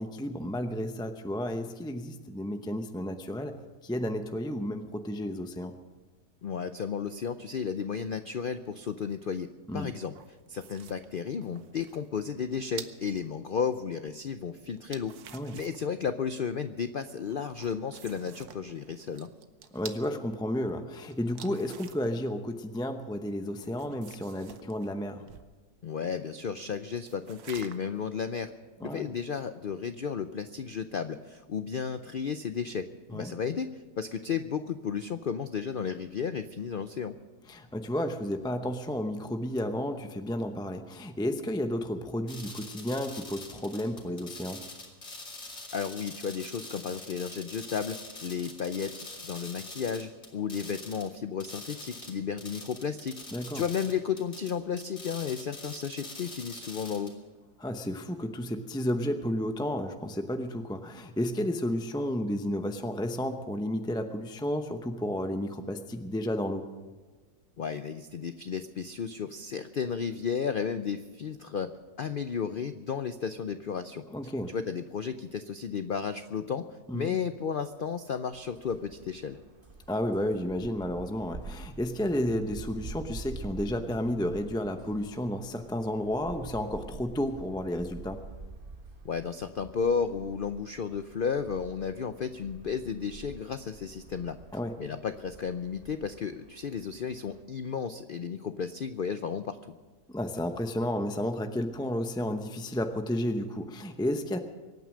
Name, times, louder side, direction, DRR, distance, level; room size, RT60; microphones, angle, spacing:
voice 1, 0.0-3.5 3.8-5.7 9.7-9.9 15.3-15.6 19.7-25.2 28.8-29.1 33.1-33.3 37.5-44.6 53.3-53.6 57.6-66.7 74.1-74.5 76.9-77.2 79.9-88.2 94.5-94.7 100.1-104.4, left 1 dB, 5° left, 6 dB, 0.4 m, -32 dB
voice 2, 6.4-10.1 10.5-15.2 15.5-19.3 25.8-28.5 28.8-32.9 33.1-37.2 45.7-53.2 53.5-57.1 67.6-71.7 72.0-74.0 74.5-76.7 76.9-79.4 89.0-94.4 94.8-99.6, left 6 dB, 70° left, 10 dB, 0.5 m, -33 dB
sound 1, 10.1-13.2 14.7-15.9 17.3-20.1 21.1-22.2 23.5-25.5 27.1-28.0, right 8 dB, 75° right, 1.4 m, -48 dB
sound 2, 42.3-51.1 51.4-57.1, left 2 dB, 45° left, 2.7 m, -44 dB
sound 3, 78.3-97.4, right 3 dB, 35° right, 1.3 m, -47 dB
23.5 x 9.3 x 6.3 m, 1.3 s
omnidirectional pair, 1.7 m